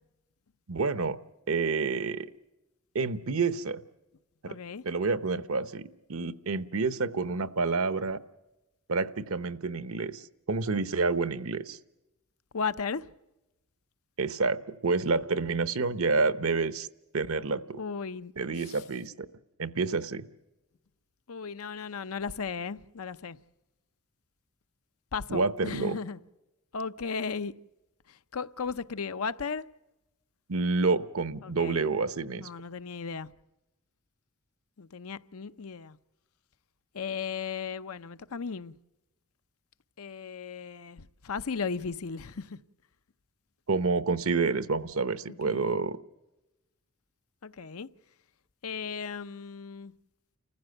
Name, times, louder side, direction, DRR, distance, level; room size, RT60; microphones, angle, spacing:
voice 1, 0.7-1.2 1.5-2.3 2.9-3.8 4.4-4.6 4.8-8.2 8.9-11.8 14.2-16.9 17.1-17.8 18.4-19.1 19.6-20.3 25.3-26.0 30.5-32.5 43.7-46.0, right 4 dB, 70° right, 0.9 m, -28 dB
voice 2, 4.5-4.8 12.5-13.1 17.7-18.3 18.6-18.8 21.3-23.4 25.1-26.2 26.7-27.5 28.1-29.6 31.4-31.8 32.4-33.3 34.8-36.0 36.9-38.7 40.0-42.6 45.3-45.6 47.4-47.9 48.6-49.9, left 5 dB, 75° left, 0.7 m, -36 dB
30.0 x 15.0 x 7.8 m
head